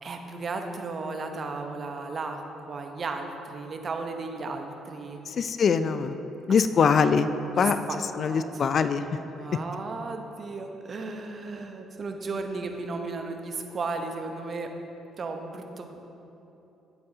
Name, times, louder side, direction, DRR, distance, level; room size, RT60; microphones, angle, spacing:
voice 1, 0.0-5.2 6.5-6.6 7.5-8.6 9.4-14.7 15.2-16.0, right 3 dB, 45° right, 4 dB, 0.9 m, -35 dB
voice 2, 5.3-6.2 6.5-7.3 7.6-7.8 8.2-9.0, left 6 dB, 55° left, 11 dB, 0.4 m, -23 dB
10.5 x 8.7 x 2.8 m, 3.0 s
hypercardioid pair, 50°, 0 cm